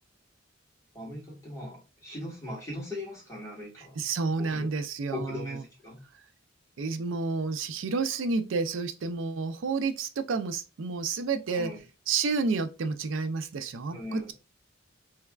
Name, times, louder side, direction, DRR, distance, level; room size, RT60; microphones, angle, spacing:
voice 1, 0.9-4.0 4.4-4.7 5.1-6.0 11.5-11.8 13.9-14.3, left 2 dB, 15° left, 1.8 m, -39 dB
voice 2, 4.0-5.6 6.8-11.7 12.1-14.3, right 4 dB, 80° right, 0.4 m, -30 dB
3.3 x 3.1 x 2.3 m
head